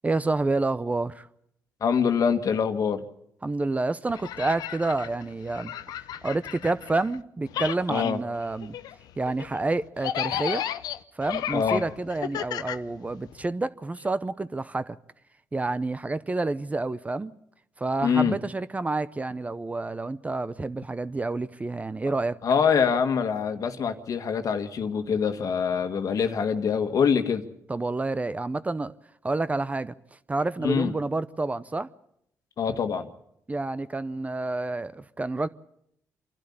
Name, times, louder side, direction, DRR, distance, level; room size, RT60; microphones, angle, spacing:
voice 1, 0.0-1.3 3.4-5.7 6.2-8.7 9.2-10.6 11.1-15.0 15.5-17.3 17.8-22.4 27.7-28.9 29.2-29.9 30.3-31.9 33.5-35.5, right 2 dB, 20° right, 0.8 m, -29 dB
voice 2, 1.8-3.0 7.9-8.2 11.5-11.8 18.0-18.4 22.4-27.4 30.6-30.9 32.6-33.1, left 6 dB, 60° left, 1.7 m, -24 dB
sound 1, 4.1-7.2 7.5-13.5, left 11 dB, 80° left, 0.7 m, -34 dB
27.0 x 12.0 x 8.6 m
cardioid pair, 75°, 7 cm